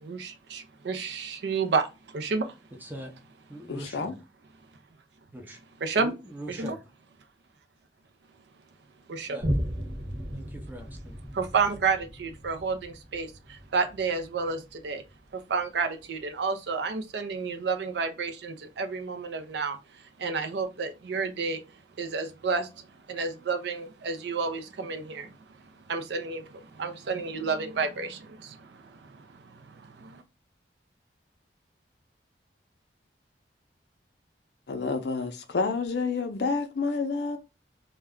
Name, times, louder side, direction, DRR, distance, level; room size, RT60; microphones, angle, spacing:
voice 1, 0.0-2.5 5.8-6.1 6.5-6.8 9.1-9.4 11.3-15.0 15.3-21.6 22.0-25.3 25.9-30.2, right 4 dB, 65° right, 0.4 m, -31 dB
voice 2, 2.8-3.1 3.5-4.2 5.3-5.6 6.0-6.8 9.3-9.5 10.3-11.2, right 1 dB, 10° right, 0.6 m, -42 dB
voice 3, 3.7-4.1 34.7-37.4, left 4 dB, 65° left, 0.5 m, -29 dB
Boom, 9.4-16.3 16.9-17.0, equal, 30° right, 1.0 m, -36 dB
2.2 x 2.2 x 3.5 m
head